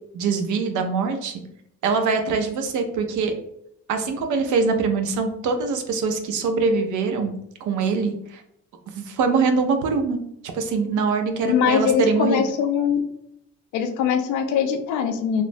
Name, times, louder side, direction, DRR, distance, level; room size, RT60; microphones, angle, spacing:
voice 1, 0.1-1.4 1.8-3.3 3.9-7.3 7.6-8.4 9.0-10.2 10.5-12.5, right 4 dB, 80° right, 6 dB, 0.5 m, -23 dB
voice 2, 11.4-13.0 13.7-15.4, left 7 dB, 85° left, 7 dB, 0.5 m, -22 dB
3.1 x 2.1 x 2.5 m, 0.75 s
cardioid pair, 90°, 30 cm